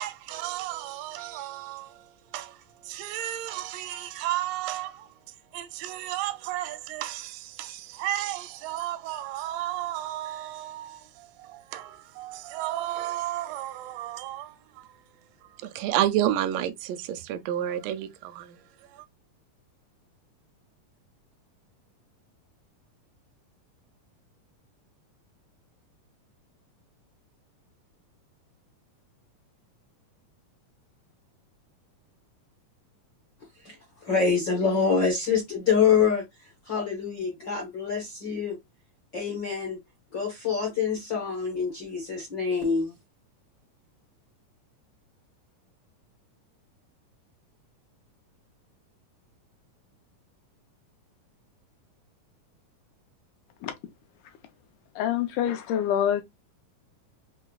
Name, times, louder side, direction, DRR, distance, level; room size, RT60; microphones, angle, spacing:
voice 1, 0.0-5.2 5.5-15.0 15.4-19.1, right 13 dB, 85° right, 2.1 m, -32 dB
voice 2, 33.6-38.6 39.1-39.8 40.1-42.9, left 6 dB, 60° left, 1.1 m, -26 dB
voice 3, 55.0-56.2, left 10 dB, 75° left, 1.9 m, -26 dB
5.8 x 2.0 x 2.2 m
omnidirectional pair, 3.8 m